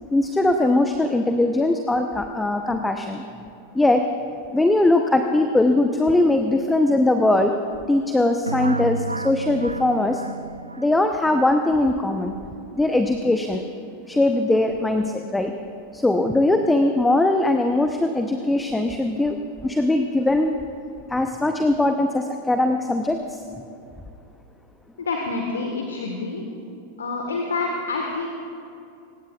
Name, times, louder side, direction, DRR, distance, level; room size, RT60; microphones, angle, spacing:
voice 1, 0.1-3.2 3.7-4.0 4.5-7.5 7.9-10.2 10.8-12.3 12.8-13.7 14.1-15.5 15.9-19.4 19.6-20.5 21.1-23.4, left 2 dB, 5° left, 6 dB, 0.8 m, -20 dB
sound 1, 8.5-11.3, right 2 dB, 80° right, 0.3 m, -31 dB
voice 2, 25.0-26.6 27.0-28.3, left 3 dB, 70° left, 2 dB, 1.5 m, -27 dB
24.5 x 19.0 x 2.4 m, 2.6 s
figure-of-eight pair, 90°, 0 cm